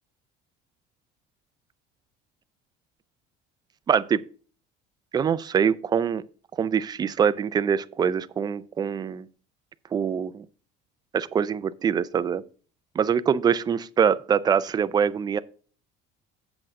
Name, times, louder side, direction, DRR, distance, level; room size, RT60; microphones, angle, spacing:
voice 1, 3.9-4.2 5.1-6.2 6.6-9.3 9.9-10.4 11.1-12.4 13.0-15.4, right 7 dB, 20° right, 0.4 m, -24 dB
7.9 x 7.6 x 3.6 m
cardioid pair, 155°, 19 cm